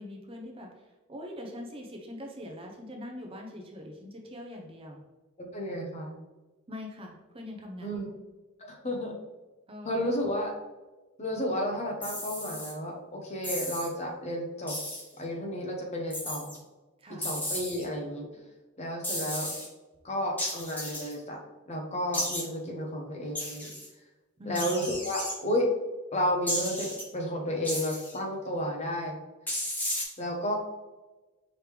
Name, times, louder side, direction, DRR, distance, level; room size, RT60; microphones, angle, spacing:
voice 1, 0.0-5.0 6.7-8.0 9.7-10.4 17.0-17.3 24.4-24.7, left 1 dB, 25° right, 1 dB, 0.6 m, -43 dB
voice 2, 5.5-6.2 7.8-8.1 8.6-9.1 9.8-10.5 11.2-14.8 15.2-16.5 17.2-18.3 18.8-19.5 20.0-21.4 21.7-23.7 24.5-25.7 26.1-29.1 30.2-30.6, equal, 30° left, 1 dB, 0.8 m, -32 dB
sound 1, 12.0-12.7 13.4-13.9 14.7-15.1 16.1-16.6 17.2-17.8 19.0-19.7 20.4-21.1 22.1-22.4 23.3-23.9 24.5-25.3 26.5-27.0 27.6-28.2 29.5-30.0, left 1 dB, 10° left, 1.0 m, -34 dB
5.0 x 3.1 x 3.3 m, 1.2 s
head